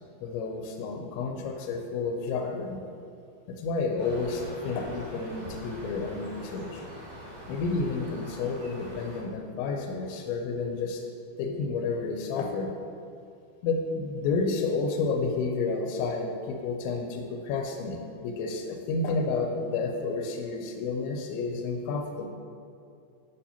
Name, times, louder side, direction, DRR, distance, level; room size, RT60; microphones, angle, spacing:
voice 1, 0.2-2.8 3.5-6.8 7.5-11.0 11.4-12.7 13.6-22.3, left 4 dB, 85° left, 2 dB, 2.9 m, -30 dB
sound 1, 4.0-9.2, equal, 45° right, 2.2 m, -43 dB
8.5 x 6.8 x 2.8 m, 2.4 s
omnidirectional pair, 5.2 m